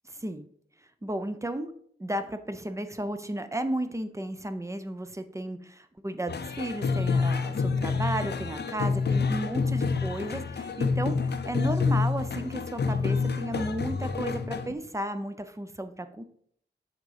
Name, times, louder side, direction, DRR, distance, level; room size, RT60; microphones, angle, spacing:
voice 1, 0.1-0.5 1.0-1.7 2.0-16.2, right 1 dB, 15° right, 9 dB, 0.5 m, -34 dB
sound 1, 6.3-14.7, left 4 dB, 65° left, 0.6 m, -28 dB
6.5 x 3.7 x 5.0 m, 0.63 s
wide cardioid pair, 90°, 19 cm